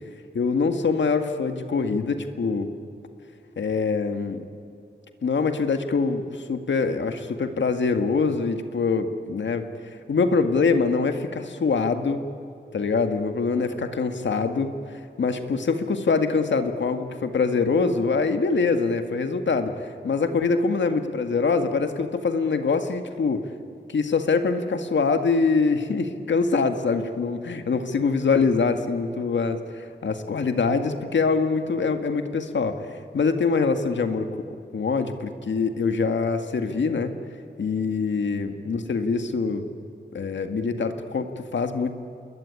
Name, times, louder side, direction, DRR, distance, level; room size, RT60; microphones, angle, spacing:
voice 1, 0.3-2.7 3.6-4.4 5.2-12.2 12.7-23.5 23.9-32.8 33.1-34.3 34.7-37.1 37.6-39.6 40.1-42.0, left 4 dB, 80° left, 7 dB, 1.8 m, -24 dB
28.0 x 21.0 x 9.9 m, 2.5 s
wide cardioid pair, 120°, 19 cm